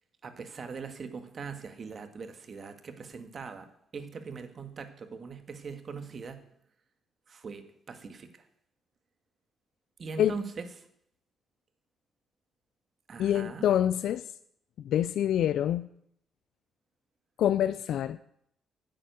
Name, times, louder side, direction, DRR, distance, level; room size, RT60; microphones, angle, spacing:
voice 1, 0.2-6.4 7.3-8.5 10.0-10.6 13.1-13.7, right 5 dB, 45° right, 8 dB, 1.6 m, -41 dB
voice 2, 13.2-14.3 14.8-15.9 17.4-18.2, left 10 dB, 75° left, 15 dB, 0.4 m, -26 dB
9.6 x 7.7 x 9.3 m, 0.73 s
cardioid pair, 90°, 0 cm